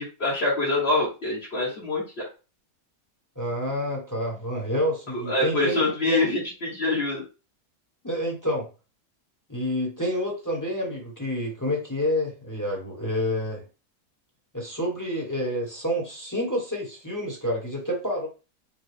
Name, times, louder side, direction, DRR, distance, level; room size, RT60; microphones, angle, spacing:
voice 1, 0.0-2.0 5.1-7.2, left 2 dB, 45° left, -6 dB, 1.5 m, -25 dB
voice 2, 3.4-6.3 8.0-8.7 9.5-13.6 14.5-18.3, equal, 15° left, -2 dB, 1.1 m, -28 dB
5.2 x 2.3 x 3.3 m, 0.31 s
omnidirectional pair, 1.5 m